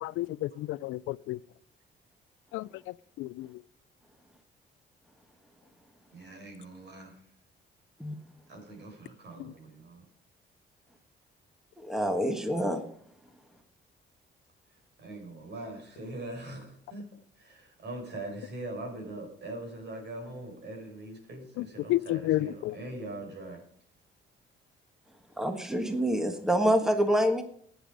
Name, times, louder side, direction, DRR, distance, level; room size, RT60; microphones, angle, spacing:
voice 1, 0.0-1.4 2.5-2.7 3.2-3.5 21.6-22.7, left 16 dB, 85° left, 0.4 m, -31 dB
voice 2, 6.1-7.2 8.5-10.0 15.0-17.0 17.4-23.6, right 2 dB, 60° right, 5.8 m, -42 dB
voice 3, 11.8-12.8 25.4-27.4, equal, ahead, 1.5 m, -26 dB
14.5 x 9.7 x 5.3 m
cardioid pair, 90°, 20 cm